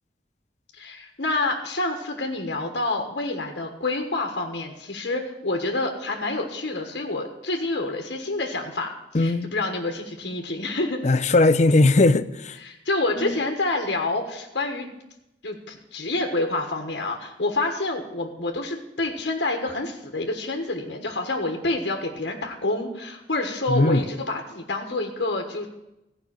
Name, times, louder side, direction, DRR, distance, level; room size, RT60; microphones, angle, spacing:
voice 1, 0.8-11.0 12.6-14.9 15.4-25.7, left 2 dB, 75° left, 1.4 m, -28 dB
voice 2, 9.1-9.5 11.0-12.6 13.2-13.4 23.7-24.0, left 2 dB, 40° left, 0.6 m, -19 dB
15.0 x 5.5 x 8.8 m
head